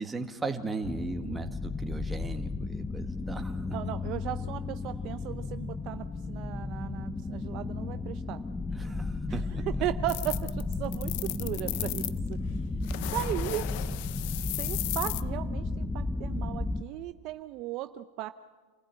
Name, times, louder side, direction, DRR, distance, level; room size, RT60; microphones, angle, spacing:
voice 1, 0.0-3.8 8.7-9.8, right 3 dB, 10° right, 5 dB, 1.7 m, -37 dB
sound 1, 0.8-16.8, left 3 dB, 10° left, 0.7 m, -34 dB
voice 2, 3.7-8.4 9.3-9.4 9.7-12.4 13.1-13.7 14.6-18.3, right 15 dB, 45° right, 10 dB, 0.7 m, -36 dB
sound 2, 10.1-12.2 12.8-15.2, left 18 dB, 60° left, 0.6 m, -35 dB
27.5 x 15.0 x 9.0 m, 1.4 s
supercardioid pair, 130°, 0 cm